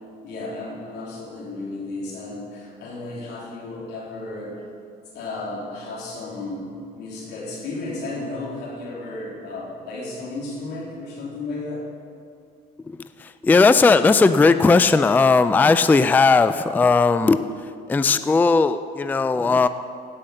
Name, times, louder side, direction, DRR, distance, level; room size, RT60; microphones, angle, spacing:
voice 1, 0.2-4.7 5.1-11.9, left 2 dB, 85° left, -3 dB, 3.5 m, -33 dB
voice 2, 12.9-17.4 17.9-19.7, left 4 dB, 10° left, 12 dB, 0.3 m, -17 dB
17.0 x 5.7 x 6.6 m, 2.3 s
cardioid pair, 110°, 17 cm